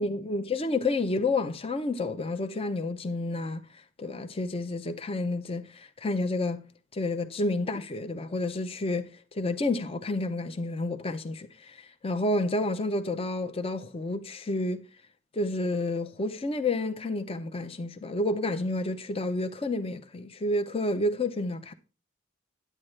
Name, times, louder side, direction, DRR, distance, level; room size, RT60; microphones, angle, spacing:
voice 1, 0.0-6.6 6.9-14.8 15.3-21.7, left 2 dB, 30° left, 0.6 m, -30 dB
10.0 x 8.7 x 3.2 m
head